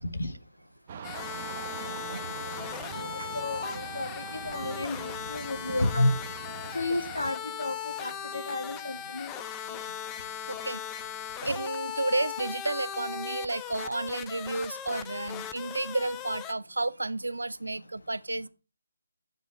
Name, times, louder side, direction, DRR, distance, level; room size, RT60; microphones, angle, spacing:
sound 1, 0.9-7.3, right 7 dB, 35° right, 0.9 m, -42 dB
sound 2, 1.0-16.5, left 9 dB, 15° left, 0.5 m, -38 dB
voice 1, 1.7-3.3 10.5-10.8 11.4-18.5, right 2 dB, 75° right, 0.5 m, -32 dB
voice 2, 3.3-6.1 6.7-9.3, left 2 dB, 70° left, 1.5 m, -31 dB
9.4 x 5.2 x 4.4 m
figure-of-eight pair, 145°, 0 cm